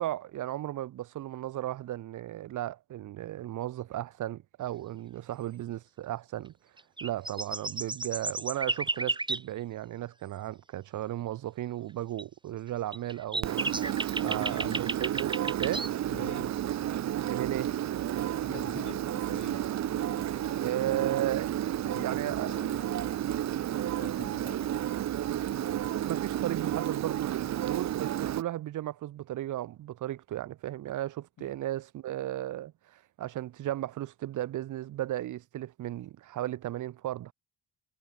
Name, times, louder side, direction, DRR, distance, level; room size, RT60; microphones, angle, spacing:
voice 1, 0.0-6.5 7.0-13.7 14.2-15.9 17.3-17.7 20.6-22.5 26.0-37.3, right 13 dB, 80° right, 4.8 m, -35 dB
sound 1, 6.8-9.4 12.2-12.3 12.9-15.9, right 2 dB, 15° right, 4.0 m, -33 dB
Engine, 13.4-28.4, right 12 dB, 65° right, 1.3 m, -31 dB
voice 2, 14.2-14.8 16.1-16.6 18.4-21.2 21.8-24.9 31.4-31.5, left 12 dB, 75° left, 5.6 m, -48 dB
cardioid pair, 90°, 30 cm